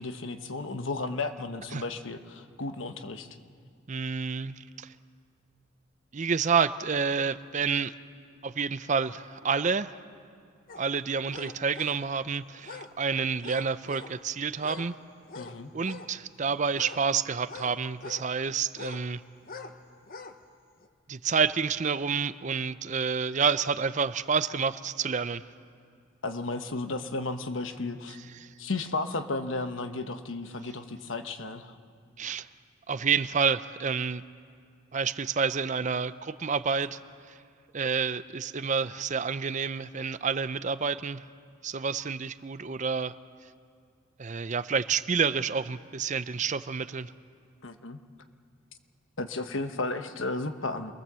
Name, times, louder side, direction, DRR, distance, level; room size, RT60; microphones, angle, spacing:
voice 1, 0.0-3.3 15.3-15.7 26.2-28.2 28.6-31.7 47.6-48.0 49.2-50.9, left 3 dB, 70° left, 8 dB, 1.2 m, -34 dB
voice 2, 3.9-4.9 6.1-7.9 8.4-10.0 10.8-14.9 15.7-19.2 21.1-25.4 28.4-28.5 32.2-32.5 32.9-34.2 34.9-37.0 37.2-37.4 37.7-41.2 41.6-43.1 44.2-47.1, right 5 dB, 35° right, 14 dB, 0.5 m, -29 dB
sound 1, 10.7-10.8 11.3-12.0 12.6-12.9 13.4-14.2 14.6-14.9 15.3-16.1 16.7-18.3 18.7-19.1 19.4-19.8 20.0-20.4 20.8-20.9, left 4 dB, 45° left, 1.0 m, -44 dB
27.0 x 21.0 x 7.6 m, 2.3 s
head